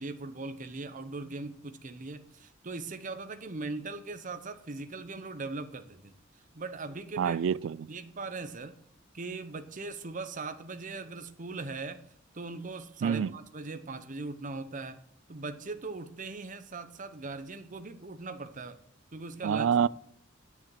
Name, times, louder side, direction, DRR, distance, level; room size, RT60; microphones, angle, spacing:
voice 1, 0.0-6.1 6.5-7.4 7.9-8.8 9.1-12.0 12.3-15.0 15.3-18.8 19.1-19.7, right 3 dB, 40° right, 0.8 m, -40 dB
voice 2, 7.2-7.9 13.0-13.3 19.4-19.9, right 7 dB, 70° right, 0.3 m, -27 dB
9.6 x 6.0 x 7.7 m
head